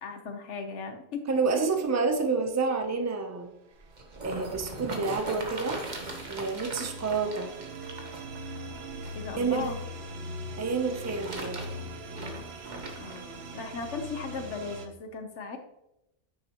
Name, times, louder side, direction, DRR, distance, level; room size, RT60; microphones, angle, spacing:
voice 1, 0.0-1.7 9.1-9.8 13.0-15.6, left 4 dB, 90° left, 6 dB, 1.3 m, -37 dB
voice 2, 1.3-3.5 4.2-5.8 6.3-7.5 9.4-9.7 10.6-11.6, right 4 dB, 15° right, 5 dB, 0.6 m, -28 dB
sound 1, 3.7-9.8 10.7-13.2 13.9-14.0, right 2 dB, 40° right, 1.2 m, -40 dB
sound 2, 3.9-14.9, right 1 dB, 65° right, 1.0 m, -42 dB
9.5 x 6.1 x 3.0 m, 0.88 s
omnidirectional pair, 1.2 m